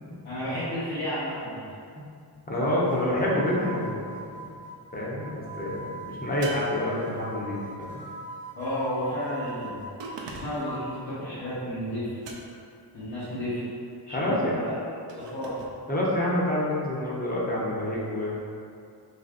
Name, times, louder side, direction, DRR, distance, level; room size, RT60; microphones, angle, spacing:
voice 1, 0.2-1.6 8.5-9.9 10.2-12.2 12.9-13.6 14.1-14.7 15.1-15.6, equal, 70° left, -14 dB, 1.1 m, -32 dB
voice 2, 2.5-4.0 4.9-8.0 14.1-14.7 15.9-18.4, left 1 dB, 20° left, -5 dB, 0.6 m, -27 dB
sound 1, 2.9-11.1, right 2 dB, 20° right, 0.5 m, -41 dB
sound 2, 6.4-7.5 10.0-10.8 12.2-12.8 15.1-15.8, right 3 dB, 85° right, 0.5 m, -41 dB
4.0 x 2.8 x 2.5 m, 2.4 s
wide cardioid pair, 135°, 42 cm